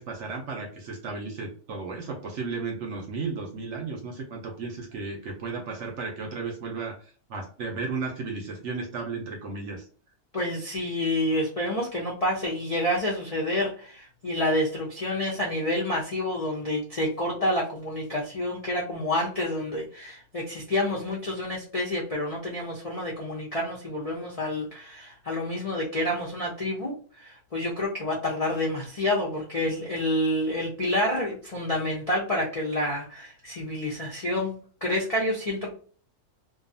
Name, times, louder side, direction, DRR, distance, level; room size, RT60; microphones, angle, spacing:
voice 1, 0.0-9.9, right 4 dB, 65° right, 1 dB, 0.8 m, -34 dB
voice 2, 10.3-34.5 34.8-35.7, left 1 dB, 60° left, -4 dB, 0.3 m, -28 dB
2.5 x 2.3 x 2.5 m, 0.42 s
omnidirectional pair, 1.6 m